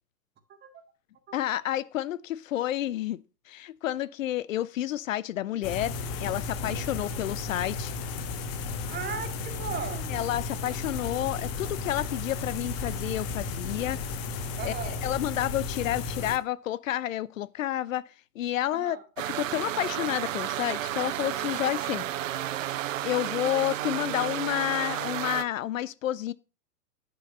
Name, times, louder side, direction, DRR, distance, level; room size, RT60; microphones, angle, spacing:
voice 1, 1.3-3.2 3.5-5.9 6.2-7.9 10.1-14.0 14.6-18.1 18.4-22.0 23.0-26.3, left 13 dB, 55° left, 0.8 m, -30 dB
sound 1, 5.6-16.4, left 4 dB, 30° left, 1.4 m, -34 dB
voice 2, 6.7-7.2 8.9-10.1 14.6-15.0 18.7-19.0, right 7 dB, 20° right, 2.1 m, -37 dB
sound 2, 19.2-25.4, right 12 dB, 55° right, 0.9 m, -32 dB
11.0 x 6.5 x 6.7 m
figure-of-eight pair, 115°, 48 cm